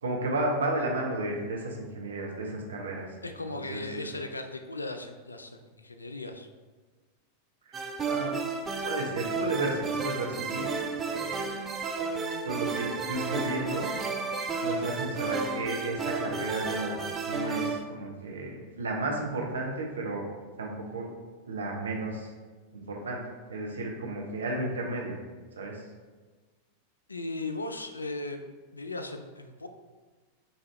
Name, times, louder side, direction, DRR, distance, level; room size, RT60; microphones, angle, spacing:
voice 1, 0.0-3.2 3.7-4.1 7.7-8.4 8.8-10.7 11.0-11.5 11.8-12.2 12.4-13.9 14.6-17.0 17.3-20.2 20.6-21.1 21.5-22.3 22.7-23.2 23.5-25.2 25.6-25.8, right 2 dB, 70° right, -1 dB, 0.8 m, -33 dB
voice 2, 3.2-6.5 14.7-15.0 27.1-28.4 28.7-29.7, left 2 dB, 80° left, 7 dB, 0.3 m, -37 dB
sound 1, 7.7-17.8, right 4 dB, 20° right, 0.4 m, -32 dB
5.5 x 2.8 x 3.2 m, 1.3 s
figure-of-eight pair, 90°, 0 cm